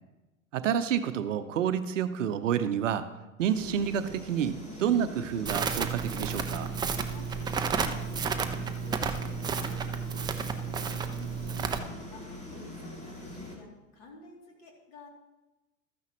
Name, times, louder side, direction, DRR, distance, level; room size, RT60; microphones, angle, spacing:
voice 1, 0.5-3.0 3.4-6.7, right 9 dB, 65° right, 11 dB, 0.7 m, -29 dB
sound 1, 3.4-13.6, left 1 dB, 15° left, 2.1 m, -42 dB
Crackle, 5.5-11.8, right 6 dB, 10° right, 0.5 m, -32 dB
voice 2, 6.9-7.3 7.7-10.8 11.1-15.1, left 3 dB, 40° left, -1 dB, 2.9 m, -52 dB
13.0 x 9.4 x 3.1 m, 1.1 s
figure-of-eight pair, 90°, 41 cm